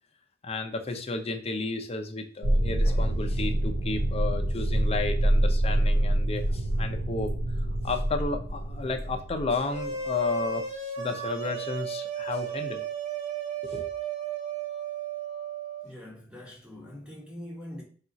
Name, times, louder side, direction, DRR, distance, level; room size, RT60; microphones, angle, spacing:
voice 1, 0.4-7.3 7.8-10.7 11.0-12.8 13.6-13.9, left 3 dB, 30° left, 0.6 m, -32 dB
sound 1, 2.4-9.9, right 1 dB, 65° right, 0.7 m, -26 dB
sound 2, 9.7-15.9, right 7 dB, 35° right, 1.2 m, -34 dB
voice 2, 15.8-17.8, left 1 dB, 5° right, 1.4 m, -43 dB
4.3 x 2.4 x 3.9 m
head